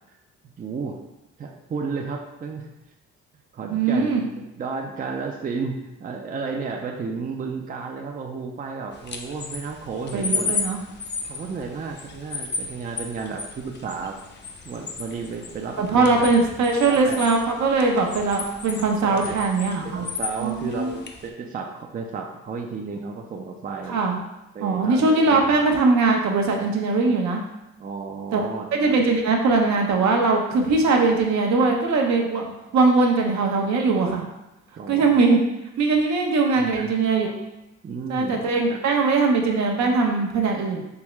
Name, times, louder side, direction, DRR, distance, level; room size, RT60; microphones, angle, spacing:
voice 1, 0.6-1.0 1.4-2.7 3.5-10.6 11.3-14.2 14.6-16.3 16.9-17.2 19.0-19.4 19.8-24.0 24.5-25.4 27.8-29.0 34.8-35.2 36.6-36.9 37.8-38.8, right 4 dB, 30° right, 2 dB, 0.4 m, -33 dB
voice 2, 3.7-4.2 10.1-10.8 15.8-20.1 20.4-21.0 23.9-24.2 24.6-27.4 28.3-28.5 28.8-34.2 34.9-35.4 35.8-37.3 38.1-40.8, right 3 dB, 65° right, 2 dB, 0.7 m, -21 dB
sound 1, 8.9-21.3, left 4 dB, 35° left, 0.5 m, -34 dB
3.5 x 3.1 x 3.0 m, 0.92 s
cardioid pair, 90°, 30 cm